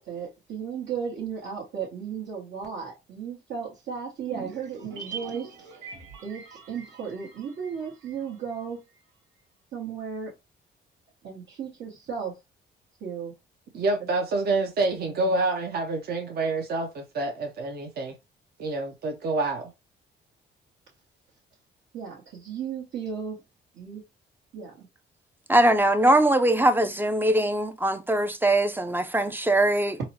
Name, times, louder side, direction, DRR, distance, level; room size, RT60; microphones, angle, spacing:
voice 1, 0.0-5.8 6.2-8.8 9.7-10.4 11.2-12.4 13.0-13.3 15.0-15.3 21.9-23.4 23.7-24.0 24.5-24.9, right 7 dB, 70° right, 1.2 m, -35 dB
sound 1, 4.2-8.7 9.0-9.1, right 5 dB, 90° right, 1.0 m, -43 dB
voice 2, 13.7-18.2 18.6-19.7, right 2 dB, 50° right, 0.7 m, -27 dB
voice 3, 25.5-30.0, right 1 dB, 10° right, 0.4 m, -21 dB
4.0 x 2.0 x 2.8 m
cardioid pair, 90°, 20 cm